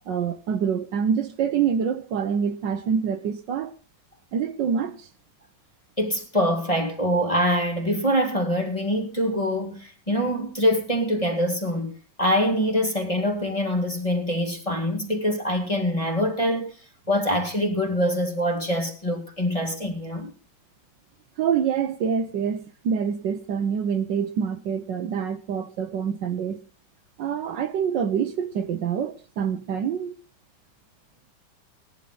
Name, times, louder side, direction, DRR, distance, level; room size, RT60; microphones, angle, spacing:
voice 1, 0.1-3.7 4.3-5.1 21.4-26.6 27.2-30.1, right 7 dB, 75° right, 1.5 m, -26 dB
voice 2, 6.0-11.9 12.2-16.7 17.1-20.3, equal, 20° left, 2.1 m, -24 dB
17.5 x 11.0 x 4.0 m
omnidirectional pair, 2.0 m